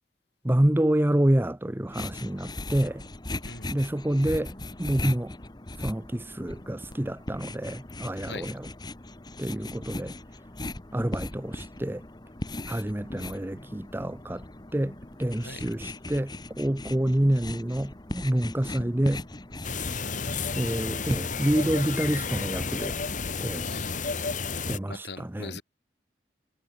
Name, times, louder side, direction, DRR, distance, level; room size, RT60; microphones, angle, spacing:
voice 1, 0.4-3.0 3.7-4.5 4.8-5.3 5.8-8.7 9.4-10.1 10.9-12.0 12.7-14.4 14.7-19.2 20.6-23.0 23.4-23.7 24.7-25.5, right 1 dB, 10° right, 0.7 m, -27 dB
sound 1, 1.9-21.6, left 2 dB, 25° left, 1.4 m, -39 dB
voice 2, 3.4-3.8 8.1-8.5 15.4-15.7 20.0-20.4 23.6-24.0 24.9-25.6, left 3 dB, 65° left, 6.7 m, -41 dB
sound 2, 19.6-24.8, left 4 dB, 45° left, 1.6 m, -31 dB
head